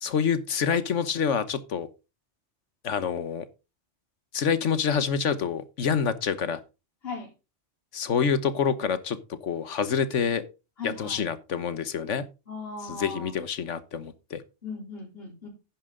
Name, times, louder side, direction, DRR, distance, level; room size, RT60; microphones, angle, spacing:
voice 1, 0.0-1.9 2.8-3.5 4.3-6.6 7.9-9.2 9.4-10.4 10.8-12.2 12.9-14.4, left 6 dB, 90° left, 1.4 m, -27 dB
voice 2, 10.8-11.2 12.5-13.3 14.6-15.5, left 4 dB, 55° left, 4.3 m, -37 dB
10.5 x 9.3 x 3.8 m
omnidirectional pair, 1.2 m